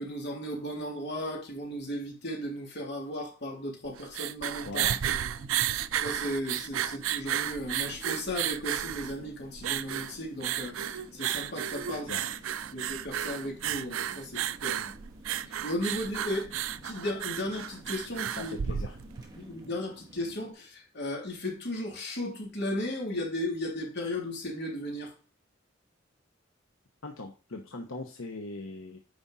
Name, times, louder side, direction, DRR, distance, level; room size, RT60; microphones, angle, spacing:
voice 1, 0.0-4.8 5.3-5.4 6.0-12.1 12.7-14.9 15.6-18.5 19.3-25.1, left 1 dB, 55° left, 3.1 m, -35 dB
sound 1, 3.9-19.3, right 10 dB, 85° right, 0.4 m, -33 dB
voice 2, 4.6-5.1 12.0-12.2 18.4-19.0 27.0-29.0, left 2 dB, 85° left, 1.0 m, -40 dB
sound 2, 5.0-20.5, equal, 20° right, 2.2 m, -53 dB
9.7 x 5.2 x 4.1 m
head